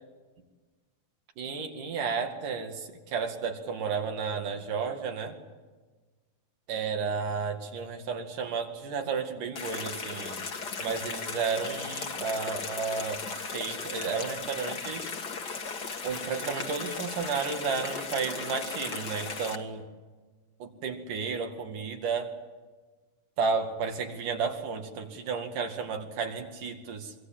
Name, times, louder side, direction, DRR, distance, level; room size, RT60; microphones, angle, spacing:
voice 1, 1.4-5.4 6.7-10.5 10.8-15.1 16.0-19.9 20.6-22.4 23.4-27.1, right 5 dB, 85° right, 4 dB, 3.9 m, -32 dB
sound 1, 9.6-19.6, left 5 dB, 40° left, 1.8 m, -37 dB
25.0 x 24.0 x 7.7 m, 1.3 s
omnidirectional pair, 3.6 m